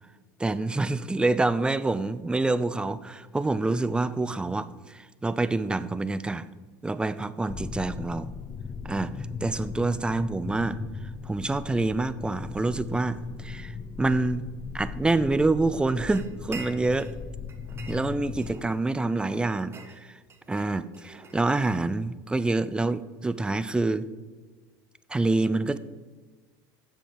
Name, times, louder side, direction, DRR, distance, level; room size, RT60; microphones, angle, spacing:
voice 1, 0.4-6.5 6.8-8.3 8.8-14.4 14.7-17.1 17.9-20.2 20.5-24.1 25.1-25.8, right 2 dB, 10° right, 14 dB, 0.5 m, -27 dB
sound 1, 7.5-18.7, left 5 dB, 30° left, 0.6 m, -38 dB
sound 2, 16.1-17.2 17.5-18.8 19.2-21.9, right 3 dB, 30° right, 1.5 m, -46 dB
8.0 x 7.2 x 6.7 m, 1.4 s
supercardioid pair, 100°, 9 cm